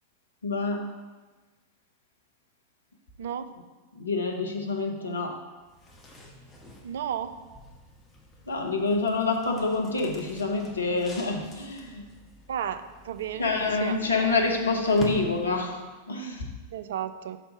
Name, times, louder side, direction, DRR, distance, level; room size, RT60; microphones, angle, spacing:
voice 1, 0.4-0.8 3.9-5.4 8.5-12.0 13.4-15.8 16.1-16.5, left 3 dB, 75° left, 3 dB, 0.8 m, -27 dB
sound 1, 5.6-15.9, left 1 dB, 15° left, 1.1 m, -45 dB
voice 2, 6.8-7.3 12.5-13.5 13.8-14.0 16.7-17.4, right 9 dB, 60° right, 11 dB, 0.3 m, -33 dB
5.8 x 4.2 x 5.1 m, 1.3 s
figure-of-eight pair, 90°, 0 cm